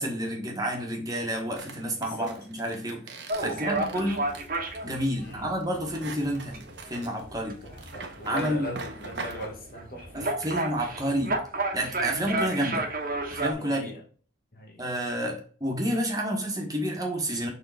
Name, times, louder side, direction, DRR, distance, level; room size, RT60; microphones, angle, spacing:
voice 1, 0.0-3.0 3.4-4.3 4.8-6.6 6.9-7.6 8.2-9.0 10.1-11.4 11.7-12.9 13.3-13.9 14.8-17.5, equal, 20° right, 1.6 m, -30 dB
sound 1, 1.6-9.5, right 3 dB, 65° right, 1.1 m, -42 dB
voice 2, 2.0-2.4 3.4-3.7 5.2-5.5 7.6-10.5 12.0-12.2 13.5-14.0 14.5-14.9, left 1 dB, 50° left, 1.6 m, -40 dB
sound 2, 3.3-13.5, right 2 dB, 45° right, 1.3 m, -33 dB
6.7 x 3.8 x 4.2 m
head